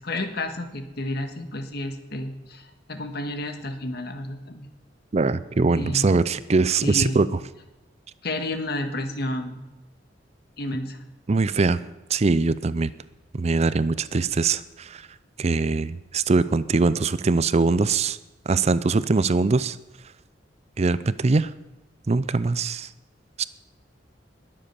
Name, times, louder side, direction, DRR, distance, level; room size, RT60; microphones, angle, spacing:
voice 1, 0.0-4.7 5.7-6.1 6.8-7.2 8.2-9.6 10.6-11.0, left 1 dB, 60° left, 7 dB, 1.7 m, -31 dB
voice 2, 5.1-7.4 11.3-11.8 12.1-12.9 13.3-15.1 15.4-18.2 18.5-19.8 20.8-21.5 22.1-22.9 23.4-23.5, right 3 dB, 35° right, 16 dB, 0.5 m, -22 dB
20.5 x 7.7 x 6.9 m, 1.0 s
head